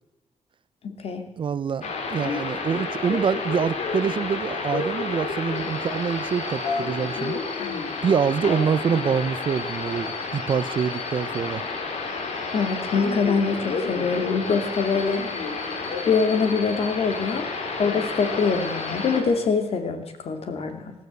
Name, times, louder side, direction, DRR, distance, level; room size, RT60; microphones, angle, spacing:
voice 1, 0.8-1.2 12.5-15.2 16.1-17.5 17.8-20.9, left 5 dB, 60° left, 7 dB, 2.5 m, -24 dB
voice 2, 1.4-7.4 8.0-11.6, right 7 dB, 45° right, 17 dB, 0.6 m, -25 dB
sound 1, 1.8-19.2, left 4 dB, 75° left, 3.8 m, -30 dB
20.0 x 16.0 x 8.2 m, 1.0 s
wide cardioid pair, 170°, 12 cm